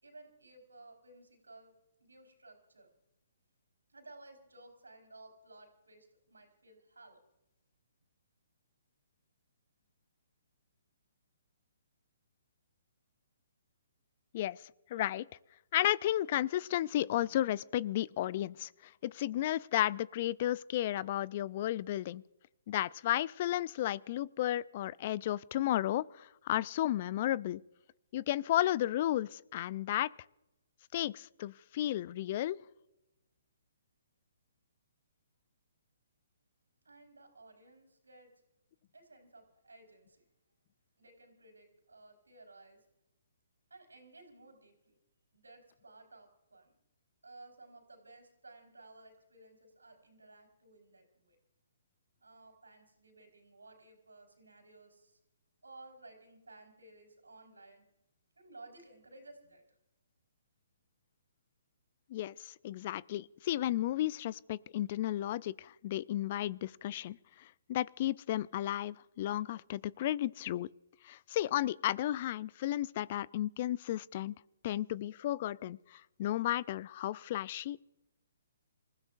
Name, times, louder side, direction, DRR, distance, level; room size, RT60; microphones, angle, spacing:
voice 1, 0.0-1.7 2.0-2.9 3.9-7.2 36.8-38.3 38.9-40.2 41.0-42.9 43.7-44.9 45.3-46.7 47.2-51.4 52.2-55.2 55.6-57.8 58.4-59.6, right 2 dB, 85° right, 4 dB, 4.4 m, -56 dB
voice 2, 14.9-15.3 15.7-22.2 22.7-27.6 28.1-30.1 30.9-32.6 62.1-70.7 71.0-74.3 74.6-77.8, left 13 dB, 45° left, 21 dB, 0.4 m, -33 dB
27.0 x 15.0 x 2.6 m, 0.90 s
figure-of-eight pair, 135°, 0 cm